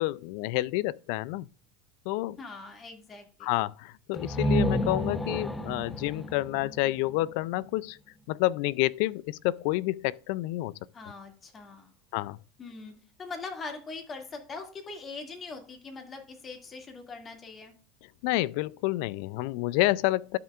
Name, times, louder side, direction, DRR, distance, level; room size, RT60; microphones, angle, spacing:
voice 1, 0.0-1.5 2.1-2.4 3.4-8.0 8.3-10.7 12.1-12.4 18.2-20.4, left 18 dB, 70° left, 0.3 m, -29 dB
voice 2, 2.4-3.5 10.9-11.9 12.6-12.9 13.2-17.7, left 4 dB, 30° left, 2.2 m, -42 dB
sound 1, 4.1-7.9, equal, 15° left, 0.7 m, -31 dB
12.5 x 5.7 x 2.4 m
supercardioid pair, 110°, 0 cm